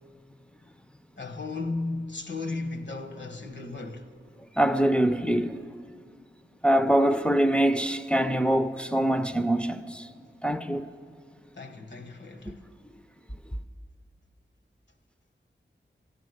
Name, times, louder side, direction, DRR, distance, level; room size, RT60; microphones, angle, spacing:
voice 1, 1.2-4.1 11.5-12.6, left 3 dB, 65° left, 1.1 m, -35 dB
voice 2, 4.6-5.6 6.6-10.1 10.4-10.9, right 1 dB, 5° left, 0.4 m, -24 dB
14.5 x 8.3 x 7.8 m
wide cardioid pair, 80°, 20 cm